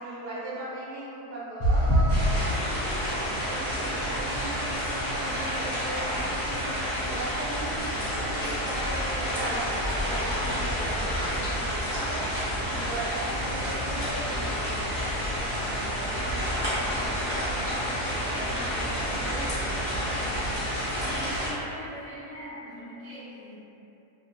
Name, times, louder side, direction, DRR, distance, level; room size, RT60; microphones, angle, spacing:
voice 1, 0.0-3.0 3.5-6.6 6.9-20.2, right 2 dB, 80° right, -8 dB, 1.2 m, -39 dB
sound 1, 1.6-6.3 6.9-7.1 7.5-7.6, equal, 70° left, 1.0 m, -28 dB
sound 2, 2.1-21.5, equal, 20° left, 0.3 m, -29 dB
sound 3, 3.7-12.3, left 1 dB, 35° left, 1.0 m, -42 dB
voice 2, 20.9-23.6, equal, 60° right, -9 dB, 1.0 m, -41 dB
2.8 x 2.1 x 2.5 m, 2.9 s
omnidirectional pair, 1.7 m